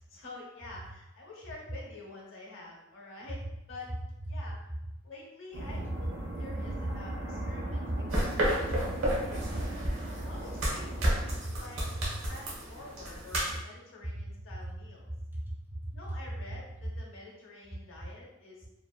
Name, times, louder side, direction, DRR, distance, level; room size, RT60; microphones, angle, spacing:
voice 1, 0.0-3.9 4.3-4.6 5.0-9.4 10.2-11.9 12.3-15.1 15.9-18.7, left 2 dB, 75° left, -3 dB, 0.7 m, -48 dB
sound 1, 5.5-11.4, right 1 dB, 55° right, 0.6 m, -38 dB
sound 2, 8.1-13.6, equal, 85° right, 0.8 m, -32 dB
voice 2, 8.3-9.1 9.4-10.1 11.4-11.6 12.1-12.2 14.1-14.3 14.6-14.7 15.1-16.1 16.5-16.6, right 1 dB, 10° right, -2 dB, 0.4 m, -39 dB
2.9 x 2.1 x 2.3 m, 0.91 s
head